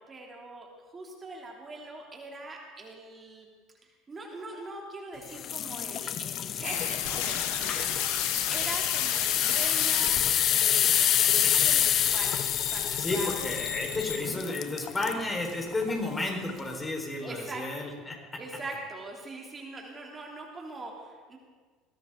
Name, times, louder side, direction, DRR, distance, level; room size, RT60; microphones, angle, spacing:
voice 1, 0.0-3.5 3.8-8.0 8.5-12.4 12.7-13.3 17.2-17.9 18.4-21.4, right 2 dB, 25° right, -1 dB, 3.1 m, -42 dB
sound 1, 5.3-15.2 15.7-15.9 16.5-16.6, left 10 dB, 45° left, 0.8 m, -28 dB
sound 2, 6.6-14.2, left 10 dB, 65° left, 1.7 m, -34 dB
voice 2, 13.0-18.2, left 2 dB, 20° left, 1 dB, 4.7 m, -32 dB
21.5 x 17.5 x 3.9 m, 1.5 s
figure-of-eight pair, 65°, 0 cm